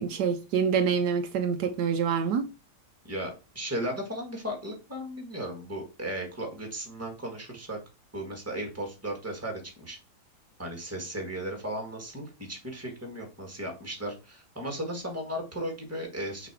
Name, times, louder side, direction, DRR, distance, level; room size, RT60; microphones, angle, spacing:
voice 1, 0.0-2.5, right 6 dB, 75° right, 1.2 m, -26 dB
voice 2, 3.0-7.8 8.1-10.0 10.6-16.5, right 1 dB, 10° right, 1.5 m, -36 dB
6.0 x 3.3 x 4.8 m
omnidirectional pair, 1.9 m